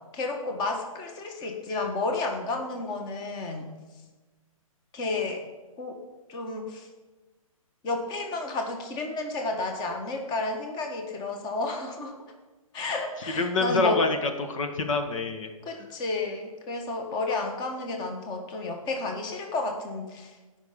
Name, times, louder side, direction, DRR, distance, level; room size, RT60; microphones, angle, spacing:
voice 1, 0.1-3.7 4.9-5.4 5.8-6.0 6.3-6.9 7.8-12.2 12.7-14.0 15.7-20.4, left 3 dB, 25° left, 3 dB, 1.6 m, -31 dB
voice 2, 13.4-15.5 15.8-15.9, left 3 dB, 65° left, 6 dB, 1.5 m, -26 dB
17.0 x 5.8 x 5.2 m, 1.2 s
hypercardioid pair, 145°, 18 cm